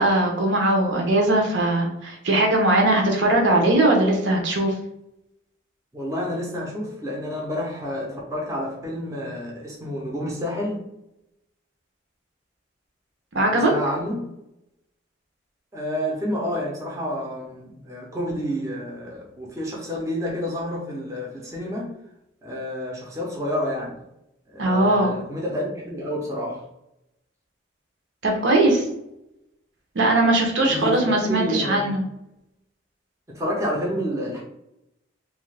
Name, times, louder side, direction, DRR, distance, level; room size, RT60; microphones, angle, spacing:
voice 1, 0.0-4.7 13.3-13.7 24.6-25.2 28.2-28.8 29.9-32.0, right 2 dB, 70° right, 1 dB, 0.7 m, -20 dB
voice 2, 5.9-10.9 13.5-14.3 15.7-21.9 22.4-24.0 24.5-26.6 30.7-31.9 33.3-34.4, equal, 15° right, -3 dB, 0.5 m, -29 dB
2.7 x 2.4 x 3.2 m, 0.85 s
head